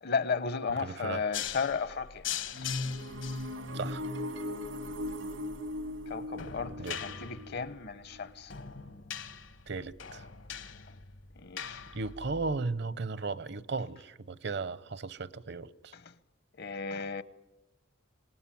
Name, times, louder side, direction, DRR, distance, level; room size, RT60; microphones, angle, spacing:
voice 1, 0.0-2.3 2.6-2.7 6.1-8.5 11.4-11.8 15.9-16.1 16.6-17.2, left 5 dB, 55° left, 0.8 m, -34 dB
voice 2, 0.8-1.3 3.7-4.0 6.8-7.0 9.7-10.2 11.9-15.9, right 4 dB, 60° right, 0.8 m, -36 dB
sound 1, 1.3-12.6, left 8 dB, 75° left, 1.4 m, -42 dB
sound 2, 2.5-8.3, left 1 dB, 85° right, 2.1 m, -38 dB
26.5 x 19.0 x 9.1 m
head